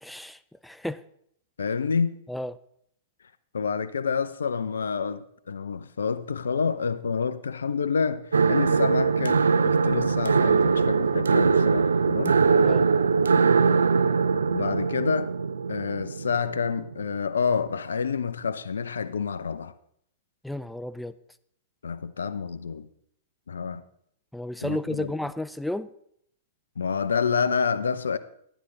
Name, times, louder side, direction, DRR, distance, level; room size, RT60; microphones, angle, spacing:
voice 1, 0.0-1.0 2.3-2.5 12.6-12.9 20.4-21.1 24.3-25.9, left 1 dB, 5° left, 0.5 m, -32 dB
voice 2, 1.6-2.2 3.5-12.4 14.5-15.3 15.7-19.7 21.8-22.9 23.5-23.8 24.6-25.1 26.8-28.2, left 6 dB, 80° left, 0.6 m, -28 dB
sound 1, 8.3-17.2, right 5 dB, 85° right, 0.4 m, -22 dB
12.0 x 9.9 x 3.9 m
hypercardioid pair, 105°, 0 cm